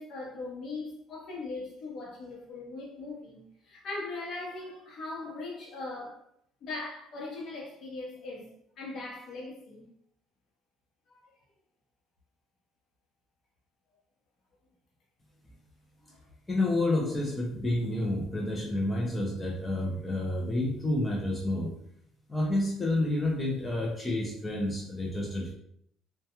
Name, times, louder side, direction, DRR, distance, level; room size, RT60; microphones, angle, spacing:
voice 1, 0.0-6.2 6.6-8.5 8.8-9.9 11.1-11.3 16.1-16.2, left 3 dB, 55° left, 0.8 m, -40 dB
voice 2, 16.5-21.7 22.3-25.5, left 1 dB, 15° left, 0.4 m, -29 dB
2.2 x 2.2 x 2.9 m
cardioid pair, 130°, 0 cm